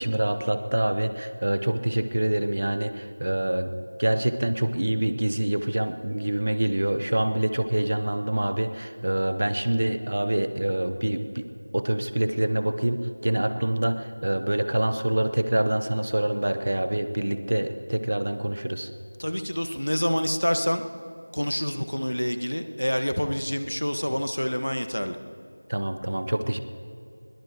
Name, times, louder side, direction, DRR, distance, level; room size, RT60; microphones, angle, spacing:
voice 1, 0.0-3.7 4.0-11.4 11.7-18.9 25.7-26.6, right 1 dB, 25° right, 10 dB, 0.6 m, -26 dB
voice 2, 19.2-20.9 21.3-25.2, equal, 80° left, 8 dB, 1.3 m, -27 dB
22.0 x 22.0 x 2.9 m, 2.6 s
figure-of-eight pair, 180°, 0 cm